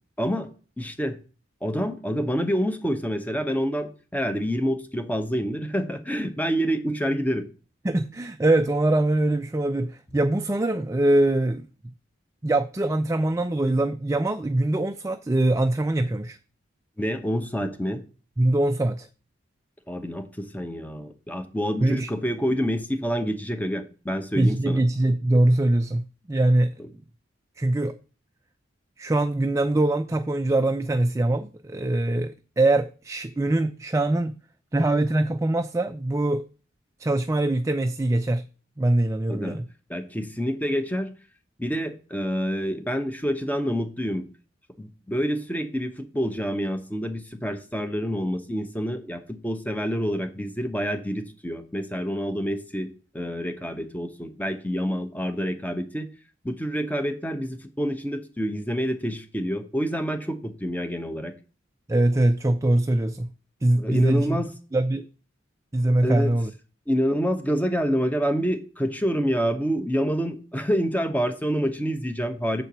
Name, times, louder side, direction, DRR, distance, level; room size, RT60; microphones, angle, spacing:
voice 1, 0.2-0.5 0.8-1.2 1.6-7.5 17.0-18.0 19.9-24.8 39.3-39.6 39.9-41.1 41.6-44.3 44.8-56.1 56.4-61.3 63.8-64.5 66.0-66.3 66.9-72.6, equal, 10° left, 0.9 m, -27 dB
voice 2, 7.8-11.7 12.4-16.4 18.4-19.1 21.8-22.1 24.3-26.8 27.6-27.9 29.0-34.4 34.7-36.5 37.0-38.5 38.8-39.7 61.9-63.3 63.6-64.4 64.7-65.1 65.7-66.5, right 1 dB, 15° right, 0.4 m, -23 dB
7.5 x 4.5 x 6.8 m
head